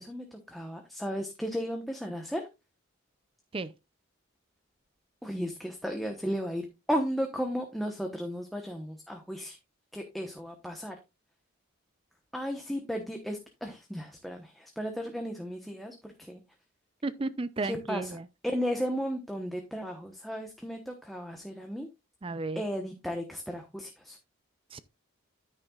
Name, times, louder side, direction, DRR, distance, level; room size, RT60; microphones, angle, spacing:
voice 1, 0.0-2.5 5.2-9.6 9.9-10.9 12.3-16.4 17.6-18.2 18.4-21.9 22.5-24.2, equal, ahead, 1.0 m, -35 dB
voice 2, 17.0-18.3 22.2-22.6 24.7-24.8, right 3 dB, 25° right, 0.4 m, -33 dB
9.8 x 9.3 x 2.4 m
head